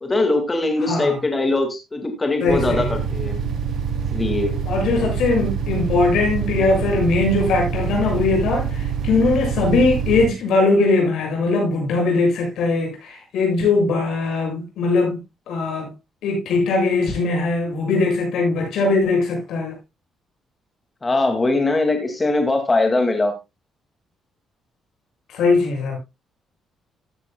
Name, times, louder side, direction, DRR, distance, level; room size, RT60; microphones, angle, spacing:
voice 1, 0.0-3.4 4.1-4.6 21.0-23.3, left 2 dB, 25° left, 2.1 m, -21 dB
voice 2, 0.8-1.2 2.4-3.0 4.7-15.2 15.5-15.9 16.2-19.8 25.3-26.0, left 3 dB, 80° left, 6.9 m, -20 dB
sound 1, 2.5-10.3, right 6 dB, 65° right, 3.0 m, -25 dB
14.5 x 11.0 x 2.2 m
cardioid pair, 90°, 0 cm